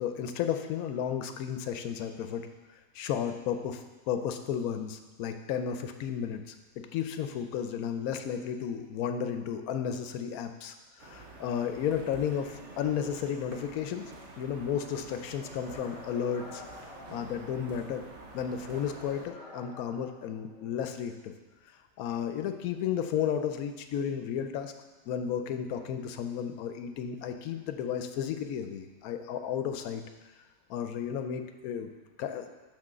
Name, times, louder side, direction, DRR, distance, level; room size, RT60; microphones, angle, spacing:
voice 1, 0.0-2.5 2.9-14.1 14.4-16.6 17.1-18.0 18.3-21.3 22.0-24.7 25.1-30.0 30.7-31.9 32.2-32.5, left 8 dB, 90° left, 7 dB, 1.1 m, -33 dB
sound 1, 11.0-19.3, right 3 dB, 60° right, 1.1 m, -48 dB
sound 2, 15.4-17.8 18.4-20.8, left 2 dB, 25° left, 1.4 m, -49 dB
6.1 x 4.3 x 6.5 m, 1.2 s
omnidirectional pair, 1.5 m